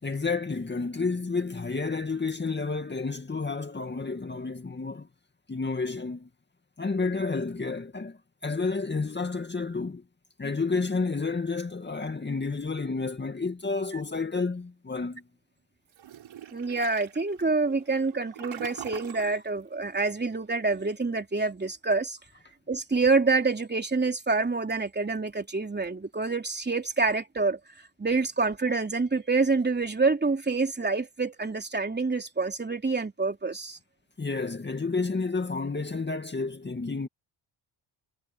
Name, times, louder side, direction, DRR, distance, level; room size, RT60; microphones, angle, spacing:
voice 1, 0.0-5.1 5.5-6.3 6.8-10.0 10.4-15.2 34.2-37.1, left 4 dB, 20° left, 2.3 m, -30 dB
Toilet flush, 15.9-19.4, right 10 dB, 65° right, 5.3 m, -43 dB
voice 2, 16.5-22.2 22.7-33.8, right 3 dB, 20° right, 3.5 m, -27 dB
cardioid pair, 95°, 48 cm